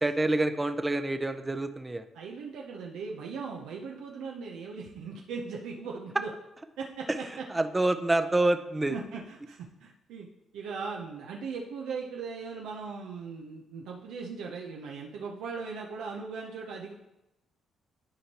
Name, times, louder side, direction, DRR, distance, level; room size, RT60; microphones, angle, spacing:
voice 1, 0.0-2.0 7.5-8.9, right 2 dB, 15° right, 9 dB, 0.5 m, -27 dB
voice 2, 2.1-6.3 6.8-7.5 8.9-10.3 10.5-16.9, right 5 dB, 90° right, -1 dB, 0.7 m, -39 dB
11.5 x 4.5 x 2.9 m, 0.93 s
cardioid pair, 90°, 0 cm